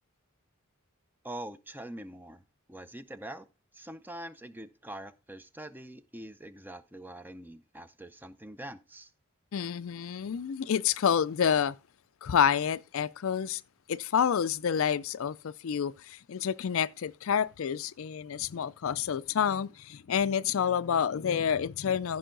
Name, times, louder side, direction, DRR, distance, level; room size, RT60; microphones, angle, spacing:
voice 1, 1.2-2.4 2.7-3.5 3.7-9.1, right 1 dB, 10° right, 0.6 m, -44 dB
voice 2, 9.5-11.7 12.2-13.6 13.9-22.2, left 8 dB, 65° left, 0.4 m, -28 dB
15.0 x 5.4 x 3.8 m
head